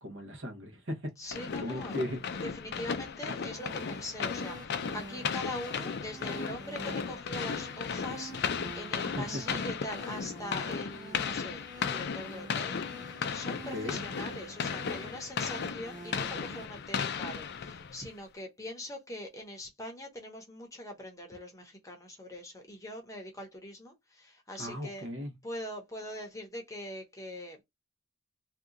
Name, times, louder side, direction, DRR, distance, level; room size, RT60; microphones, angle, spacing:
voice 1, 0.0-2.2 2.7-2.9 9.0-9.6 13.7-14.0 24.6-25.3, left 1 dB, 60° right, 1.0 m, -38 dB
voice 2, 1.2-2.0 2.4-25.1 25.4-27.6, left 1 dB, 15° left, 0.8 m, -42 dB
sound 1, 1.3-18.1, left 6 dB, 50° left, 0.4 m, -36 dB
sound 2, 3.5-16.7, right 1 dB, 20° right, 1.0 m, -48 dB
2.8 x 2.3 x 3.7 m
head